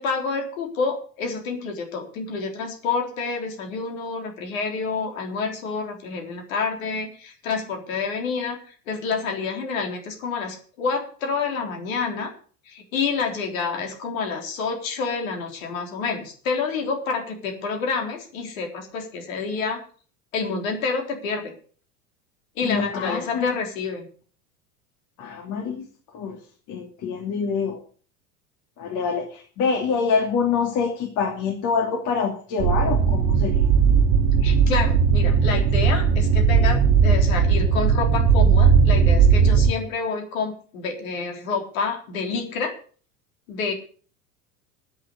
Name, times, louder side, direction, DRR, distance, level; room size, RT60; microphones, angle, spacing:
voice 1, 0.0-12.3 12.7-19.8 20.3-21.5 22.6-24.1 34.4-42.7 43.5-43.7, left 5 dB, 60° left, 3 dB, 3.7 m, -28 dB
voice 2, 22.6-23.5 25.2-25.9 26.1-26.4 26.7-27.8 28.8-33.5, left 5 dB, 40° left, 2 dB, 2.8 m, -25 dB
sound 1, 32.6-39.7, right 6 dB, 50° right, 1.4 m, -18 dB
10.5 x 8.7 x 8.3 m, 0.43 s
figure-of-eight pair, 80°, 45 cm